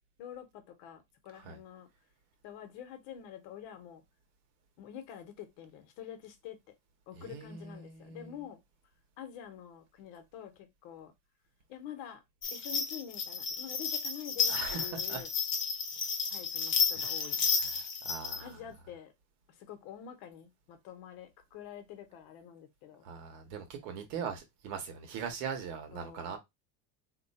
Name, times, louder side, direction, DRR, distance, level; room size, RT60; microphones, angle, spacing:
voice 1, 0.2-1.9 2.4-4.0 4.8-6.6 7.1-8.6 9.2-11.1 11.7-12.2 12.5-15.3 16.3-17.6 18.3-19.1 19.5-23.1 25.9-26.4, left 9 dB, 70° left, 1.0 m, -47 dB
voice 2, 7.1-8.4 14.5-15.2 17.0-17.3 17.5-18.5 23.0-26.4, right 6 dB, 85° right, 1.3 m, -41 dB
sound 1, 12.4-18.4, left 6 dB, 30° left, 0.6 m, -32 dB
3.0 x 2.3 x 4.1 m
cardioid pair, 180°, 42 cm